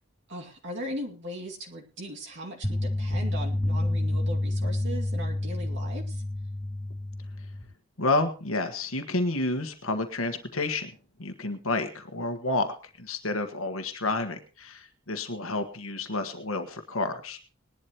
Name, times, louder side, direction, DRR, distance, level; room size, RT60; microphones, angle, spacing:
voice 1, 0.3-6.2, equal, 60° right, 0 dB, 2.4 m, -38 dB
sound 1, 2.6-7.6, left 1 dB, 15° left, 3.6 m, -29 dB
voice 2, 8.0-10.9 11.2-17.4, left 2 dB, 75° left, 7 dB, 1.5 m, -30 dB
20.0 x 11.5 x 3.0 m, 0.35 s
head